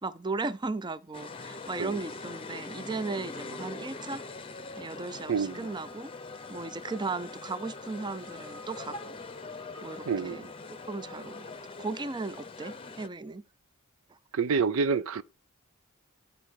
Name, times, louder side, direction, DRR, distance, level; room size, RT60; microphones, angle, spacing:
voice 1, 0.0-4.2 4.8-6.1 6.5-9.2 9.8-10.5 10.9-11.5 11.8-13.4, right 3 dB, 20° right, 0.5 m, -36 dB
sound 1, 1.1-13.1, left 3 dB, 25° left, 0.7 m, -43 dB
voice 2, 5.3-5.7 10.1-10.5 14.3-15.2, right 5 dB, 70° right, 0.5 m, -28 dB
11.5 x 4.3 x 6.4 m
head